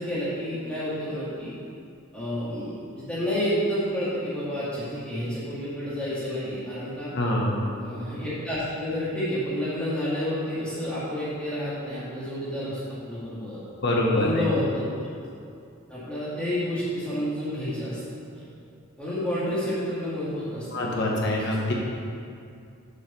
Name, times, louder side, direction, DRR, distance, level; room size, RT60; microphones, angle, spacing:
voice 1, 0.0-1.5 2.1-7.1 7.8-13.6 14.1-15.1 15.4-15.5 15.9-18.0 18.3-18.4 19.0-21.7, equal, 5° left, -11 dB, 2.2 m, -30 dB
voice 2, 7.1-7.6 13.8-14.3 20.7-21.7, left 1 dB, 55° left, -2 dB, 1.3 m, -24 dB
6.7 x 5.1 x 7.0 m, 2.4 s
head